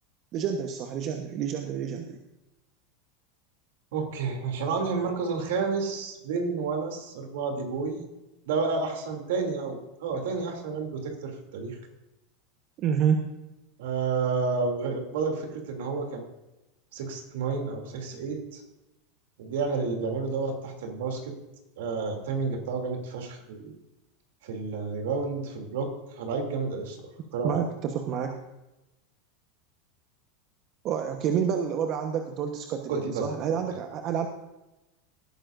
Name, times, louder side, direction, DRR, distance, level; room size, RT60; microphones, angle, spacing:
voice 1, 0.3-2.2 12.8-13.2 27.4-28.4 30.8-34.3, right 7 dB, 45° right, 4 dB, 1.2 m, -28 dB
voice 2, 3.9-8.0 8.5-11.8 13.8-16.2 16.9-18.6 19.4-21.3 21.8-23.7 24.4-25.9 26.1-27.1 27.3-27.6 32.9-33.2, right 4 dB, 75° right, 3 dB, 3.0 m, -30 dB
18.0 x 10.0 x 2.6 m, 0.97 s
hypercardioid pair, 110°, 0 cm